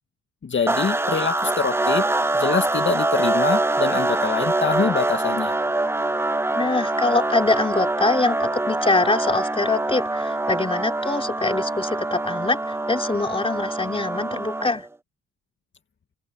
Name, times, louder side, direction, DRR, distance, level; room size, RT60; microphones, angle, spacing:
voice 1, 0.4-2.1 2.3-5.5, left 6 dB, 40° left, 2.2 m, -25 dB
sound 1, 0.7-14.9, right 2 dB, 10° right, 0.7 m, -24 dB
voice 2, 6.5-14.9, left 3 dB, 20° left, 4.0 m, -24 dB
cardioid pair, 90°, 30 cm